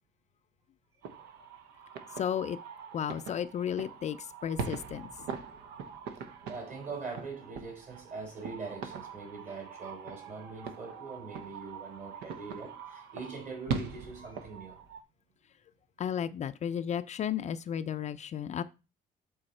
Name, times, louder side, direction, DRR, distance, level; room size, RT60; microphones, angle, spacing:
sound 1, 1.0-15.0, right 5 dB, 85° right, 0.9 m, -42 dB
voice 1, 2.2-2.6 2.9-5.3 16.0-18.6, left 9 dB, 45° left, 0.4 m, -33 dB
voice 2, 6.5-14.8, right 4 dB, 45° right, 3.3 m, -42 dB
7.8 x 4.0 x 4.3 m
cardioid pair, 110°, 17 cm